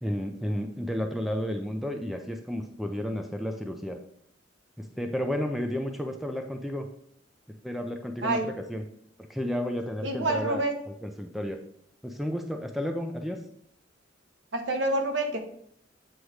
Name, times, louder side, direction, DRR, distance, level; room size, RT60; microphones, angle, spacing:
voice 1, 0.0-4.0 4.8-6.9 7.6-8.4 8.7-8.8 9.3-11.6 12.0-13.4, equal, ahead, 4 dB, 0.4 m, -32 dB
voice 2, 10.0-10.8 14.5-15.4, right 2 dB, 70° right, 4 dB, 1.0 m, -27 dB
8.0 x 3.0 x 4.8 m, 0.68 s
head